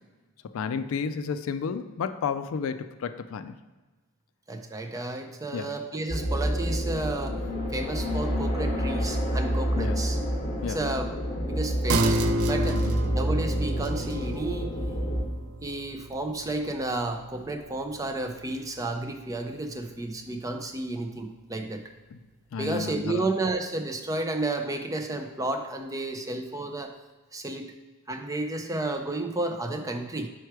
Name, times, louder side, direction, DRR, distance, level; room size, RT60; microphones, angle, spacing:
voice 1, 0.5-3.5 5.5-5.7 9.8-10.0 10.6-10.8 12.7-13.0 22.1-22.2 22.5-23.2, left 6 dB, 65° left, 10 dB, 0.3 m, -31 dB
voice 2, 4.5-7.4 7.7-10.2 10.7-11.1 11.4-12.2 12.5-12.8 13.1-14.7 15.6-21.8 22.6-26.9 27.3-27.7 28.1-30.3, right 2 dB, 15° right, 5 dB, 0.4 m, -32 dB
sound 1, 6.1-15.2, equal, 30° left, 1.0 m, -28 dB
sound 2, 11.9-18.9 19.3-19.4, right 2 dB, 75° right, 0.4 m, -32 dB
4.7 x 4.5 x 4.6 m, 1.2 s
head